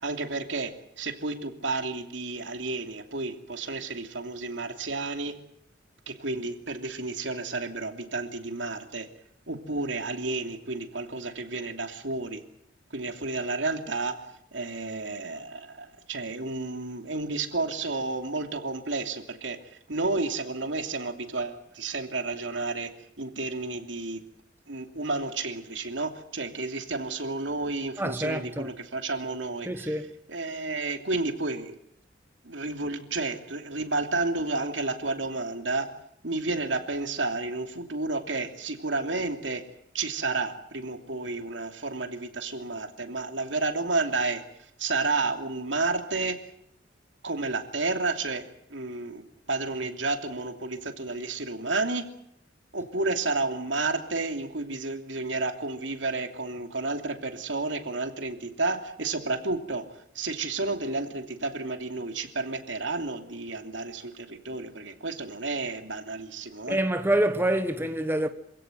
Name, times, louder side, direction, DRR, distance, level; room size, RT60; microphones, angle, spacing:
voice 1, 0.0-5.4 6.1-9.1 9.5-12.4 12.9-14.2 14.5-19.6 19.9-22.9 23.2-24.2 24.7-29.9 30.3-31.8 32.4-35.9 36.2-39.6 39.9-44.4 44.8-46.4 47.2-52.0 52.7-59.8 60.1-66.8, right 3 dB, 75° right, 2.9 m, -31 dB
voice 2, 28.0-28.7 29.6-30.1 66.7-68.3, right 1 dB, 10° right, 1.1 m, -26 dB
27.0 x 16.5 x 9.3 m
head